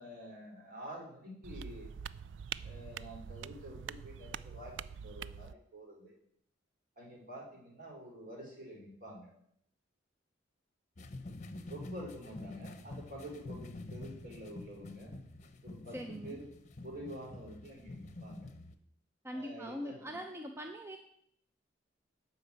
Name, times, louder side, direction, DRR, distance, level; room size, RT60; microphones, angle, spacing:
voice 1, 0.0-1.9 2.6-6.1 7.0-9.3 11.7-15.1 15.6-16.4 16.8-18.5 19.3-20.0, equal, 50° right, -1 dB, 3.4 m, -48 dB
sound 1, 1.4-5.5, right 8 dB, 70° right, 0.3 m, -45 dB
sound 2, 11.0-18.7, left 2 dB, 40° left, 0.8 m, -48 dB
voice 2, 15.9-16.4 19.2-21.0, equal, 15° right, 4 dB, 0.6 m, -42 dB
11.5 x 4.7 x 8.0 m, 0.70 s
head